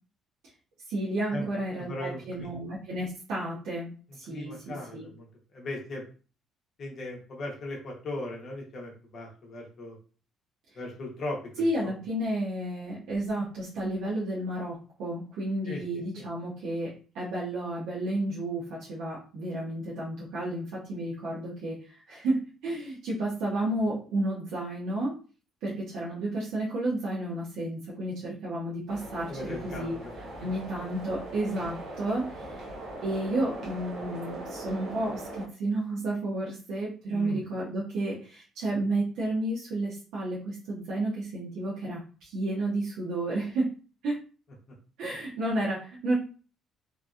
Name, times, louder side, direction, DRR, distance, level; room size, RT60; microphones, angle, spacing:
voice 1, 0.9-3.9 4.2-5.1 11.6-25.1 25.6-29.9 30.4-32.7 33.0-43.7 44.0-44.2 45.0-46.1, right 1 dB, 75° right, -7 dB, 0.9 m, -31 dB
voice 2, 1.8-2.5 4.2-5.3 5.5-6.0 6.8-10.0 10.7-12.0 15.7-16.2 29.3-30.1 30.4-30.5 37.1-37.4, left 2 dB, 35° left, -1 dB, 0.9 m, -38 dB
sound 1, 28.9-35.5, right 1 dB, 50° right, 0.9 m, -40 dB
3.0 x 2.6 x 2.4 m, 0.37 s
cardioid pair, 175°, 0 cm